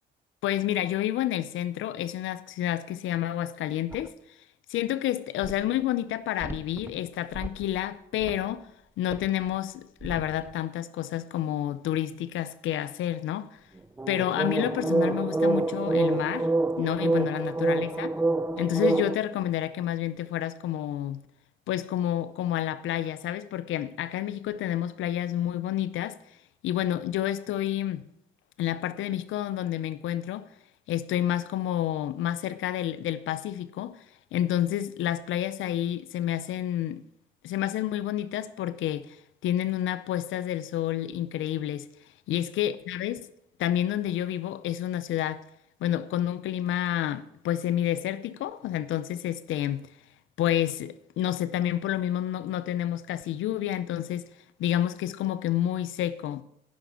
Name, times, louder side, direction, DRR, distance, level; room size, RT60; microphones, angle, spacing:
voice 1, 0.4-4.1 4.7-8.7 9.0-13.5 14.1-16.5 16.8-18.1 18.6-21.2 21.7-26.2 26.6-28.0 28.6-30.5 30.9-34.0 34.3-37.0 37.4-41.9 42.3-43.3 43.6-45.4 45.8-49.9 50.4-54.3 54.6-56.4, left 12 dB, 80° left, 0.6 m, -29 dB
sound 1, 3.9-4.1 5.4-5.5 6.4-6.9 7.3-7.8 8.2-8.4 9.1-9.3 10.0-10.3 14.0-19.2, right 2 dB, 10° right, 0.5 m, -27 dB
10.5 x 5.9 x 6.8 m
cardioid pair, 90°, 20 cm